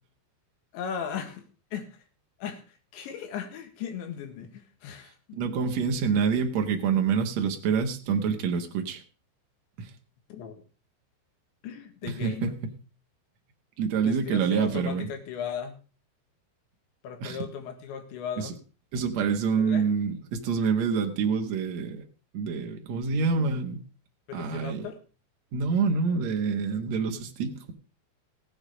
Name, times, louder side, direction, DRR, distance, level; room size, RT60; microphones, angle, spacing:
voice 1, 0.7-1.5 1.7-1.9 2.4-5.4 6.0-6.1 10.3-10.6 11.6-12.6 14.0-15.8 17.0-18.6 19.6-19.8 24.3-25.0, left 7 dB, 75° left, 7 dB, 3.9 m, -37 dB
voice 2, 5.3-9.0 9.8-9.9 12.0-12.7 13.8-15.1 17.2-17.4 18.4-18.5 18.9-22.0 22.3-23.8 24.3-24.9 25.5-27.7, right 5 dB, 70° right, 4 dB, 1.7 m, -27 dB
16.0 x 9.0 x 5.0 m, 0.35 s
omnidirectional pair, 5.4 m